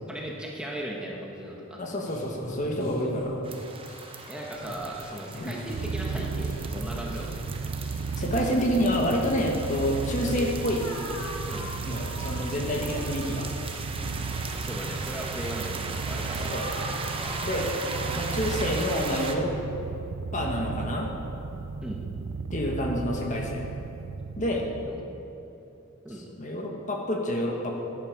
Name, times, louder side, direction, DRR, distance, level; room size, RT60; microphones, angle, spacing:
voice 1, 0.1-1.8 4.3-7.3 11.4-11.7 14.5-16.8 21.8-22.0 24.8-25.1 26.0-26.3, right 1 dB, 5° right, -3 dB, 1.3 m, -37 dB
voice 2, 1.8-3.4 5.4-5.5 8.2-10.8 11.8-13.5 16.5-16.7 17.4-17.7 18.1-19.5 20.3-21.1 22.5-23.7 24.4-24.7 26.4-27.8, equal, 35° left, 0 dB, 1.5 m, -28 dB
sound 1, 2.1-18.1, left 1 dB, 80° left, 2.2 m, -41 dB
Floating Water, 3.4-19.4, right 4 dB, 25° right, 0.8 m, -38 dB
Purr, 5.7-25.0, right 4 dB, 65° right, 0.4 m, -35 dB
15.5 x 9.9 x 5.3 m, 2.9 s
head